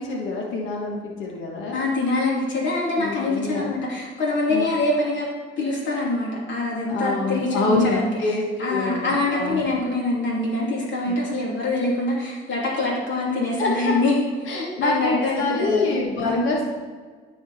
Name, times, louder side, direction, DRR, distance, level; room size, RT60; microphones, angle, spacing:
voice 1, 0.0-1.8 3.0-3.7 4.5-4.7 6.9-8.4 8.7-9.6 11.1-11.2 13.6-13.7 14.5-16.7, left 3 dB, 85° left, -1 dB, 1.4 m, -26 dB
voice 2, 1.7-5.3 5.6-8.1 8.6-14.1 14.5-16.0 16.2-16.4, left 2 dB, 70° left, -4 dB, 2.9 m, -24 dB
13.0 x 4.8 x 4.2 m, 1.5 s
cardioid pair, 90°, 20 cm